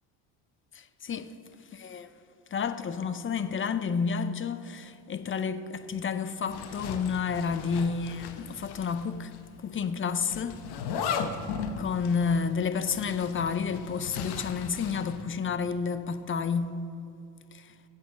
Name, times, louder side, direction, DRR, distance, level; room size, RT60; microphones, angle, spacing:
voice 1, 0.7-1.3 1.7-2.1 2.5-9.3 9.6-10.6 11.8-16.7 17.5-17.7, left 6 dB, 30° left, 0.5 m, -30 dB
Zipper (clothing), 6.5-9.1 9.3-9.4 10.3-15.2, left 6 dB, 65° left, 1.0 m, -37 dB
8.5 x 7.3 x 7.2 m
cardioid pair, 100°, 41 cm